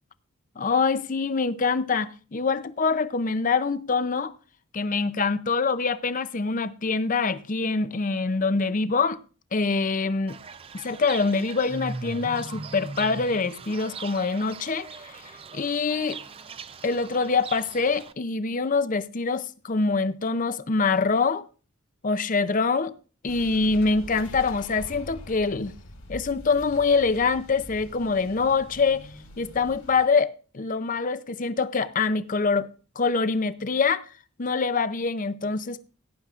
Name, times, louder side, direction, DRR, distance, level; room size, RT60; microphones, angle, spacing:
voice 1, 0.6-4.3 4.7-9.2 9.5-10.4 10.7-15.2 15.5-16.2 16.8-21.5 22.0-22.9 23.2-25.7 26.1-29.1 29.4-32.7 33.0-34.1 34.4-35.8, left 4 dB, 35° left, 0.5 m, -25 dB
Fowl / Bird, 10.3-18.1, right 4 dB, 25° right, 0.4 m, -40 dB
sound 1, 23.3-30.1, left 1 dB, 60° left, 2.6 m, -44 dB
sound 2, 23.4-27.4, left 2 dB, 80° left, 3.8 m, -49 dB
17.0 x 10.5 x 2.4 m
head